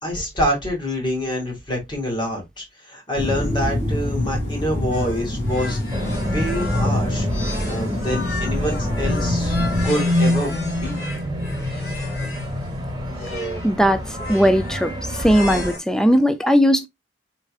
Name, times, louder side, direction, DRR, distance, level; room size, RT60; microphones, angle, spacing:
voice 1, 0.0-9.6 9.8-11.0, equal, 25° left, 2.2 m, -26 dB
sound 1, 3.1-9.9, left 1 dB, 45° left, 2.2 m, -25 dB
sound 2, 4.9-12.5 13.1-13.7 14.1-15.8, left 2 dB, 75° left, 3.1 m, -34 dB
sound 3, 5.9-15.7, left 1 dB, 25° right, 1.2 m, -27 dB
voice 2, 13.6-14.0 14.3-14.9 15.2-16.9, equal, 5° left, 0.4 m, -17 dB
4.7 x 4.4 x 2.3 m
head